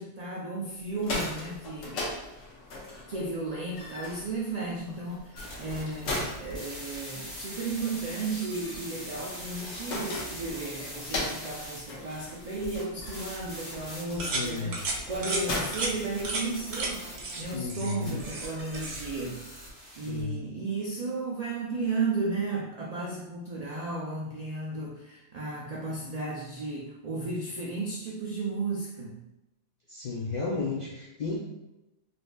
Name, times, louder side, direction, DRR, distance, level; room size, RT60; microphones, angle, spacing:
voice 1, 0.0-2.1 3.1-17.0 17.4-19.4 20.0-29.2, right 3 dB, 80° right, -3 dB, 0.3 m, -34 dB
sound 1, 0.8-16.7, left 2 dB, 85° left, 1.2 m, -39 dB
sound 2, 5.4-20.2, equal, 45° left, 1.7 m, -43 dB
sound 3, 14.2-14.5 14.7-15.0 15.2-15.4 15.7-15.9 16.2-16.4 16.7-16.9 17.2-17.4 17.7-18.5 18.7-19.0, right 2 dB, 65° right, 0.9 m, -32 dB
voice 2, 14.3-14.8 17.5-18.2 20.1-20.4 29.9-31.4, left 3 dB, 65° left, -4 dB, 0.4 m, -33 dB
4.1 x 2.5 x 2.2 m, 0.94 s
omnidirectional pair, 1.3 m